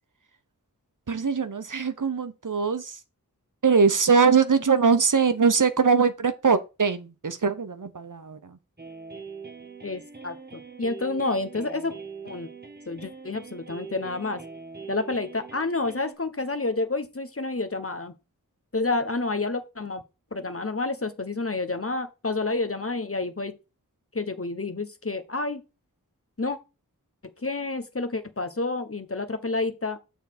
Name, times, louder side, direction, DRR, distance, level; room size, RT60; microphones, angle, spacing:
voice 1, 1.1-3.0 3.6-8.6, right 5 dB, 65° right, 0.9 m, -22 dB
sound 1, 8.8-16.1, right 5 dB, 30° right, 1.4 m, -42 dB
voice 2, 9.8-11.9 12.2-12.5 12.9-14.4 14.9-18.1 18.7-20.0 20.3-23.6 24.1-25.6 26.4-26.6 27.2-30.0, left 3 dB, 40° left, 1.1 m, -29 dB
7.1 x 4.0 x 5.9 m
wide cardioid pair, 50°, 34 cm